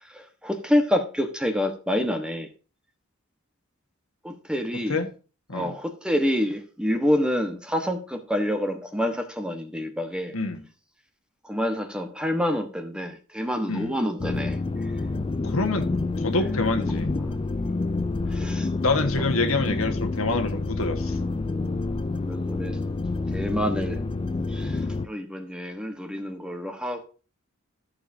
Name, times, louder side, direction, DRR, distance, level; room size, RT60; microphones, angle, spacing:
voice 1, 0.1-2.5 4.2-5.0 5.5-10.3 11.4-14.6 17.6-17.9 18.3-18.7 22.2-22.8 23.3-24.0 24.5-27.1, left 1 dB, 5° right, 1.3 m, -27 dB
voice 2, 10.3-10.6 13.7-14.0 15.4-17.1 18.8-21.2, left 3 dB, 80° left, 1.6 m, -26 dB
sound 1, 14.2-25.1, left 3 dB, 25° left, 0.4 m, -28 dB
14.5 x 7.1 x 2.8 m
head